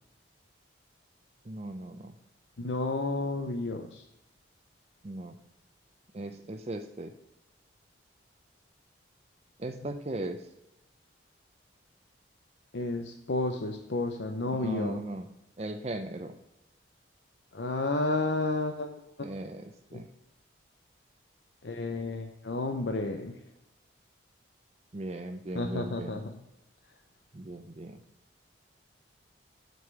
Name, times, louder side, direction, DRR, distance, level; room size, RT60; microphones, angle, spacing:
voice 1, 1.4-2.1 5.0-5.4 6.1-7.1 9.6-10.5 14.6-15.3 15.6-16.3 19.2-20.1 24.9-26.2 27.3-28.0, right 1 dB, 35° right, 6 dB, 0.5 m, -38 dB
voice 2, 2.6-4.0 12.7-15.0 17.5-18.9 19.9-20.0 21.6-23.4 25.5-26.2, left 2 dB, 70° left, 5 dB, 0.7 m, -31 dB
7.8 x 5.3 x 6.7 m, 0.91 s
head